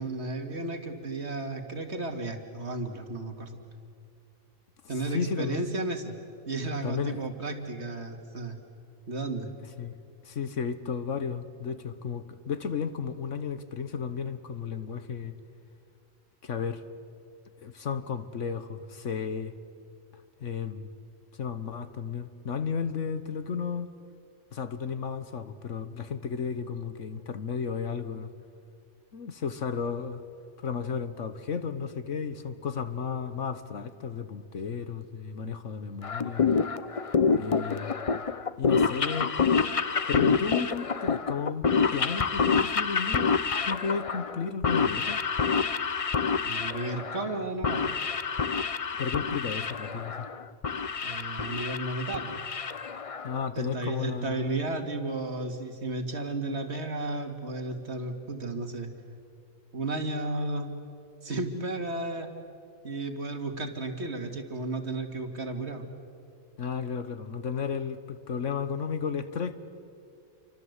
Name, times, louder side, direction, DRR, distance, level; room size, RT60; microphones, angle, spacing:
voice 1, 0.0-3.6 4.9-6.1 6.5-8.6 9.1-9.5 46.4-47.8 51.0-52.4 53.6-58.9 59.7-60.7 61.2-62.3 62.8-65.8, right 2 dB, 55° right, 5 dB, 2.5 m, -33 dB
voice 2, 5.1-5.6 6.8-7.2 9.8-9.9 10.2-15.3 16.4-16.8 17.6-19.5 20.4-20.9 21.4-23.9 24.5-28.3 29.1-30.2 30.6-36.5 37.4-37.9 38.6-39.3 40.1-45.2 48.9-50.3 53.2-54.5 66.6-69.6, left 6 dB, 70° left, 11 dB, 1.5 m, -33 dB
sound 1, 36.0-53.4, left 5 dB, 35° left, 0.6 m, -28 dB
29.0 x 24.5 x 8.2 m, 2.4 s
omnidirectional pair, 1.3 m